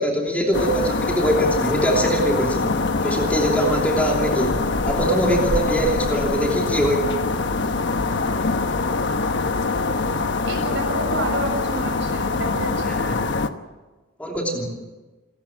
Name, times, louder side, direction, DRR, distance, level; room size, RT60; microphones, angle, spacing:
voice 1, 0.0-2.7 3.0-4.6 4.8-7.1 12.8-13.2 14.2-14.7, right 1 dB, 5° left, 0 dB, 2.9 m, -22 dB
sound 1, 0.5-13.5, left 3 dB, 55° left, 1.1 m, -24 dB
voice 2, 10.5-13.1, right 1 dB, 60° right, 3 dB, 7.1 m, -29 dB
29.0 x 13.0 x 8.7 m, 1.2 s
head